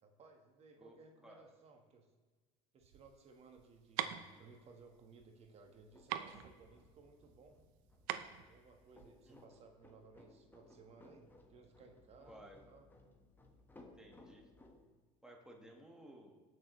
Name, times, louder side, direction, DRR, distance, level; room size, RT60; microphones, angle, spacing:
voice 1, 0.0-2.1 2.7-7.6 8.5-12.8, right 4 dB, 40° right, 4 dB, 1.5 m, -61 dB
sound 1, 2.8-9.4, right 12 dB, 70° right, 0.7 m, -44 dB
sound 2, 5.6-14.8, left 2 dB, 10° left, 1.5 m, -63 dB
voice 2, 12.2-12.6 13.9-14.5 15.2-16.4, right 1 dB, 5° right, 1 dB, 1.6 m, -57 dB
17.5 x 6.5 x 3.2 m, 1.4 s
supercardioid pair, 95°, 16 cm